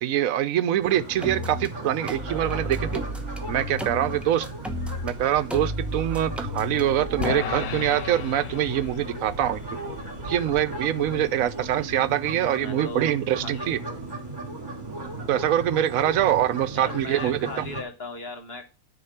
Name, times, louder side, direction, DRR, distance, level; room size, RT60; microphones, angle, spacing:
voice 1, 0.0-3.0 3.5-4.5 5.0-9.6 10.2-13.8 15.3-17.7, right 11 dB, 75° right, 1.1 m, -24 dB
sound 1, 0.8-17.8, right 2 dB, 30° right, 2.3 m, -36 dB
sound 2, 1.2-1.7 2.1-5.1 5.5-7.3, equal, ahead, 0.8 m, -32 dB
voice 2, 2.3-2.8 6.9-7.4 12.3-13.1 13.4-14.0 16.8-18.7, left 3 dB, 45° left, 1.7 m, -39 dB
sound 3, 7.2-13.6, left 9 dB, 70° left, 1.0 m, -37 dB
9.8 x 4.4 x 5.8 m
omnidirectional pair, 1.4 m